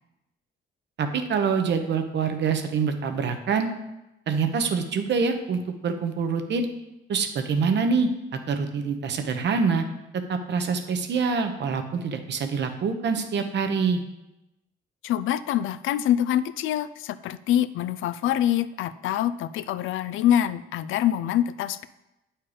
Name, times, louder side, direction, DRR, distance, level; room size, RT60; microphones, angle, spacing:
voice 1, 1.0-3.7 4.3-6.7 7.1-9.8 10.3-14.0, right 5 dB, 60° right, 6 dB, 1.0 m, -25 dB
voice 2, 15.0-21.9, left 11 dB, 80° left, 14 dB, 0.4 m, -25 dB
8.5 x 4.5 x 5.0 m, 0.93 s
cardioid pair, 90°, 20 cm